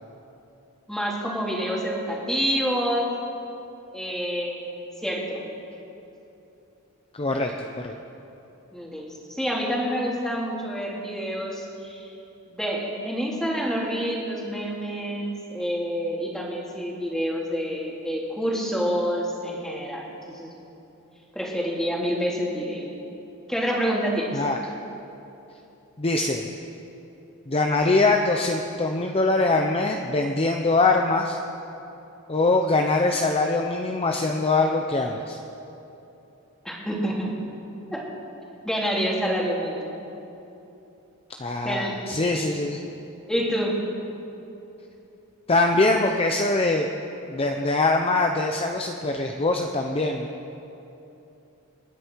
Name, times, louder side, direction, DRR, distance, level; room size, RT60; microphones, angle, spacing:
voice 1, 0.9-3.1 3.9-5.4 8.7-12.1 12.5-20.5 21.3-22.9 23.5-24.4 36.6-37.3 37.9-38.0 38.6-39.9 41.6-42.0 43.3-43.7, equal, 5° left, -4 dB, 2.8 m, -27 dB
voice 2, 7.1-7.9 24.3-24.6 26.0-26.5 27.5-31.4 32.3-35.4 41.4-42.8 45.5-46.9 47.3-50.3, left 2 dB, 25° left, 3 dB, 0.7 m, -23 dB
28.5 x 10.0 x 4.6 m, 3.0 s
head